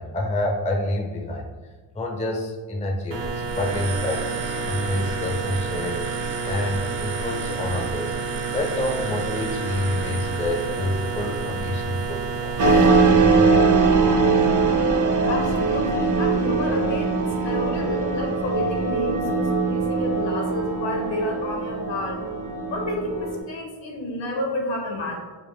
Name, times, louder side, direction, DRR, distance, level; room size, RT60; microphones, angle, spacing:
voice 1, 0.0-1.5 1.9-6.0 6.4-8.2 8.5-12.6, left 1 dB, 15° left, 3 dB, 0.4 m, -28 dB
sound 1, 3.1-12.9, right 5 dB, 75° right, 0.7 m, -29 dB
sound 2, 12.6-23.4, right 4 dB, 45° right, 0.5 m, -21 dB
voice 2, 15.3-22.2 22.7-25.2, left 2 dB, 70° left, 1 dB, 0.9 m, -30 dB
5.0 x 2.2 x 3.0 m, 1.3 s
cardioid pair, 90°, 45 cm